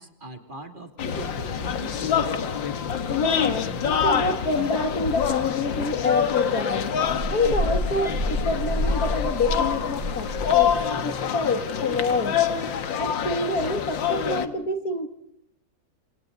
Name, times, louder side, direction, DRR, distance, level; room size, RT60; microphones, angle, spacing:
voice 1, 0.0-2.2, right 2 dB, 25° right, 6 dB, 2.8 m, -41 dB
sound 1, 1.0-14.5, left 8 dB, 80° left, 2.2 m, -26 dB
voice 2, 3.1-7.0 7.3-10.7 11.0-12.3 13.0-15.1, left 3 dB, 50° left, 8 dB, 2.2 m, -27 dB
sound 2, 5.1-14.2, equal, 65° right, 6.7 m, -31 dB
27.5 x 27.0 x 3.9 m, 0.73 s
omnidirectional pair, 2.0 m